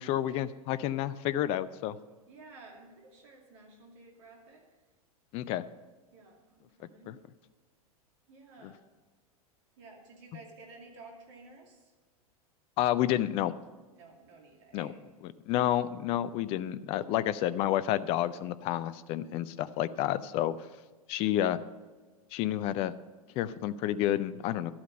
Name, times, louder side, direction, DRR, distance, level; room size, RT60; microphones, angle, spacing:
voice 1, 0.0-2.0 5.3-5.6 7.1-7.2 12.8-13.5 14.7-14.9 15.5-20.5 21.1-21.6 22.3-22.9 23.4-24.7, left 12 dB, 30° left, 15 dB, 0.4 m, -30 dB
voice 2, 2.3-4.7 6.1-7.2 8.3-8.8 9.8-11.9 13.9-15.0, right 3 dB, 50° right, 0 dB, 2.4 m, -53 dB
12.0 x 8.6 x 5.4 m, 1.3 s
figure-of-eight pair, 90°, 19 cm